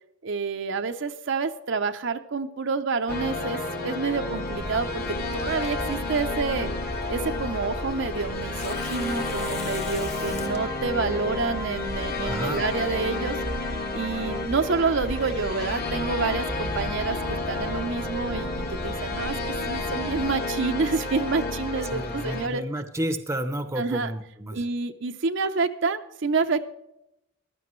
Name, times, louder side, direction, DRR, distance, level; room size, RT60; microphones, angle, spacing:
voice 1, 0.2-6.7 7.1-13.4 13.9-19.4 19.7-22.6 23.8-24.1 24.5-26.6, right 4 dB, 60° right, 7 dB, 0.7 m, -28 dB
sound 1, 3.1-22.5, left 2 dB, 45° left, 1.6 m, -31 dB
sound 2, 4.5-20.3, equal, 70° left, 2.5 m, -38 dB
Tearing, 5.5-13.3, left 4 dB, 30° left, 1.2 m, -45 dB
voice 2, 12.2-12.6 21.9-24.6, right 1 dB, 15° right, 9 dB, 0.8 m, -31 dB
15.5 x 12.0 x 3.1 m, 0.86 s
head